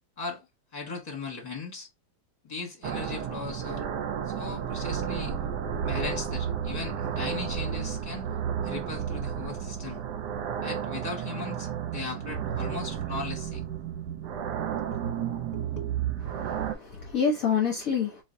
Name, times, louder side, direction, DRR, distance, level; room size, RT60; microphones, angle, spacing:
voice 1, 0.7-1.9 2.4-3.8 4.3-5.4 5.8-8.3 8.6-10.0 10.6-13.6 14.9-16.0, left 4 dB, 20° left, 1.4 m, -38 dB
sound 1, 2.8-16.7, right 8 dB, 70° right, 1.0 m, -32 dB
voice 2, 16.3-18.2, left 6 dB, 55° left, 1.1 m, -28 dB
4.3 x 3.1 x 2.6 m
omnidirectional pair, 2.3 m